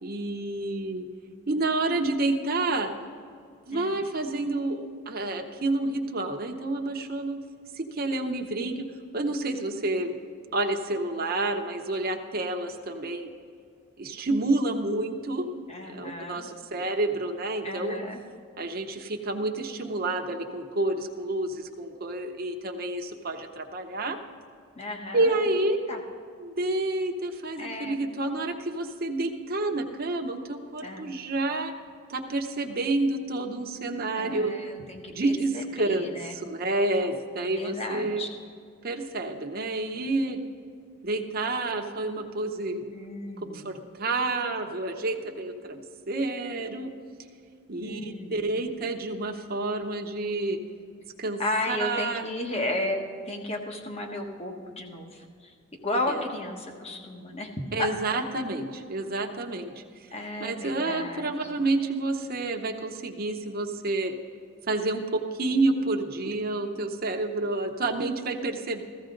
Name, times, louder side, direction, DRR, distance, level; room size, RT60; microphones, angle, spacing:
voice 1, 0.0-1.1 1.5-2.9 3.6-7.4 7.7-8.9 9.1-10.2 10.5-13.3 14.0-15.5 15.9-18.0 18.6-24.2 25.1-25.8 26.4-31.7 32.1-34.5 35.1-38.2 38.8-40.4 41.0-42.8 43.4-46.9 47.7-50.6 51.2-51.4 51.7-52.2 56.1-56.2 57.7-59.7 60.4-64.1 64.7-68.8, right 2 dB, 45° right, 3 dB, 0.9 m, -29 dB
voice 2, 3.7-4.0 15.7-16.5 17.6-18.2 24.8-25.4 25.9-26.0 27.6-28.0 30.8-31.1 34.1-36.3 37.4-38.3 42.9-43.7 47.8-48.5 51.4-53.0 53.2-55.5 55.8-57.5 57.8-57.9 60.1-61.3, left 1 dB, 30° left, 2 dB, 1.3 m, -34 dB
15.5 x 14.0 x 3.9 m, 2.3 s
head